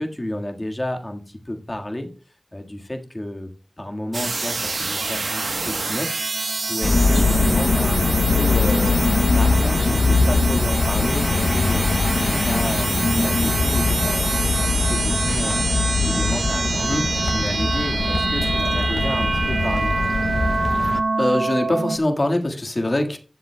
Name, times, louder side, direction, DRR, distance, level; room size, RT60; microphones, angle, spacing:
voice 1, 0.0-2.1 2.5-3.5 3.8-9.0 9.3-11.9 12.3-15.6 16.0-20.3, left 1 dB, 25° left, 3 dB, 1.6 m, -31 dB
sound 1, 4.1-22.0, right 3 dB, 80° right, 1.0 m, -26 dB
Motor vehicle (road) / Siren, 6.4-6.9 7.5-8.1 9.3-9.9 10.5-11.4 12.8-13.0 14.6-14.8, left 2 dB, 65° left, 3.8 m, -46 dB
sound 2, 6.8-21.0, left 3 dB, 85° left, 0.7 m, -21 dB
voice 2, 21.2-23.2, left 1 dB, 45° left, 4 dB, 1.6 m, -22 dB
18.5 x 7.4 x 2.2 m, 0.35 s
wide cardioid pair, 70°, 0 cm